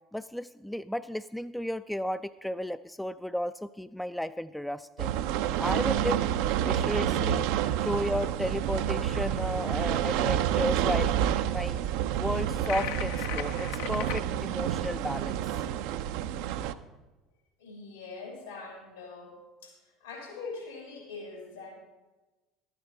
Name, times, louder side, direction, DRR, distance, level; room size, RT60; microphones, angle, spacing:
voice 1, 0.1-5.2 5.6-7.5 7.8-11.8 12.2-15.6, equal, 5° left, 12 dB, 0.3 m, -33 dB
sound 1, 5.0-16.7, right 10 dB, 65° right, 0.4 m, -29 dB
sound 2, 12.7-14.2, left 11 dB, 65° left, 0.5 m, -36 dB
voice 2, 17.6-21.7, left 4 dB, 80° left, 0 dB, 3.5 m, -43 dB
12.5 x 8.9 x 4.8 m, 1.1 s
figure-of-eight pair, 65°, 0 cm